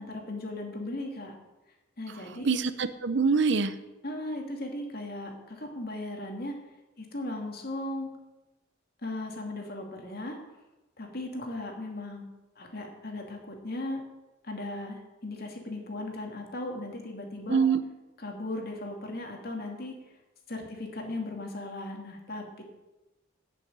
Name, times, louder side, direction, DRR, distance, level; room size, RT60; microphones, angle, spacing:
voice 1, 0.0-1.4 2.0-2.5 4.0-6.6 7.0-8.1 9.0-10.4 11.0-12.3 12.6-14.0 14.4-17.6 18.2-20.0 20.5-22.6, left 2 dB, 45° left, 1 dB, 2.5 m, -37 dB
voice 2, 2.4-3.7 17.5-17.8, right 5 dB, 60° right, 12 dB, 0.7 m, -24 dB
11.5 x 6.8 x 8.6 m, 1.1 s
head